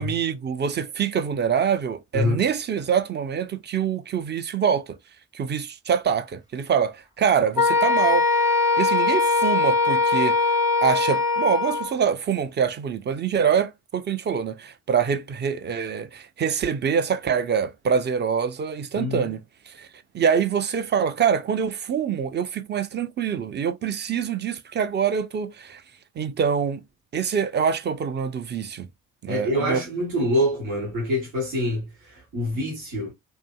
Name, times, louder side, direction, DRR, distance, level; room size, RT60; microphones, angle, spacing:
voice 1, 0.0-5.0 5.3-8.3 8.8-10.4 10.8-19.9 20.1-25.8 26.2-26.8 27.1-28.9 29.2-29.8, right 7 dB, 25° right, 0.4 m, -25 dB
Wind instrument woodwind instrument, 7.6-11.9, left 4 dB, 10° right, 0.8 m, -21 dB
voice 2, 18.9-19.3 29.3-33.1, left 1 dB, 75° right, 1.2 m, -26 dB
2.7 x 2.6 x 2.3 m
figure-of-eight pair, 40°, 42 cm